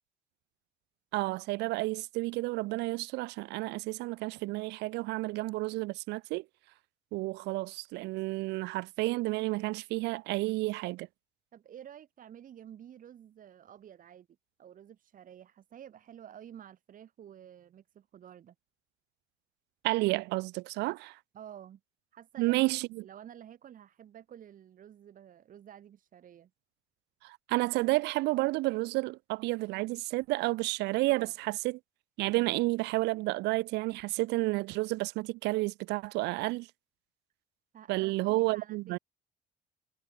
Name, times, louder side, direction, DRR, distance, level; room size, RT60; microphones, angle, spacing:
voice 1, 1.1-6.4 7.1-11.1 19.8-21.2 22.4-23.1 27.2-31.8 32.2-36.7 37.9-39.0, right 21 dB, 85° right, 0.7 m, -31 dB
voice 2, 11.5-14.3 14.6-18.5 21.3-21.8 22.1-22.6 23.0-26.5 31.1-31.3 37.7-39.0, right 10 dB, 55° right, 4.2 m, -51 dB
cardioid pair, 110°, 17 cm